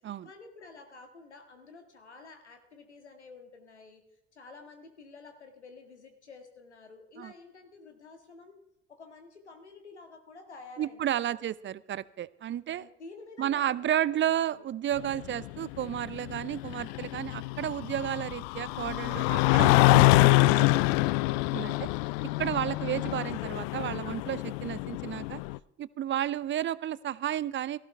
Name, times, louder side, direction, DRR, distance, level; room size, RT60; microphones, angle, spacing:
voice 1, 0.2-4.0 4.3-8.6 8.9-11.4 12.8-14.7, left 4 dB, 85° left, 5 dB, 1.9 m, -50 dB
voice 2, 10.8-12.9 13.4-20.9 21.5-21.9 22.4-25.4 25.8-27.8, right 11 dB, 35° right, 19 dB, 0.6 m, -32 dB
sound 1, 15.0-25.6, left 20 dB, 60° left, 0.5 m, -26 dB
17.0 x 15.5 x 3.4 m, 0.81 s
figure-of-eight pair, 55°, 33 cm